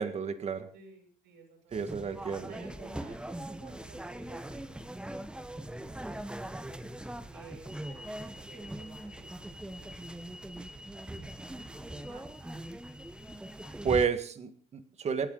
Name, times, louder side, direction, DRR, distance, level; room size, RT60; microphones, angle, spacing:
voice 1, 0.0-0.7 1.7-2.5 13.8-15.3, right 6 dB, 40° right, 9 dB, 1.7 m, -31 dB
voice 2, 0.7-2.2 2.5-6.3 7.3-10.1 11.9-12.5, right 4 dB, 85° right, 3 dB, 6.7 m, -55 dB
sound 1, 1.7-14.1, right 1 dB, 5° right, 0.9 m, -41 dB
26.0 x 9.2 x 3.9 m, 0.44 s
cardioid pair, 110°, 17 cm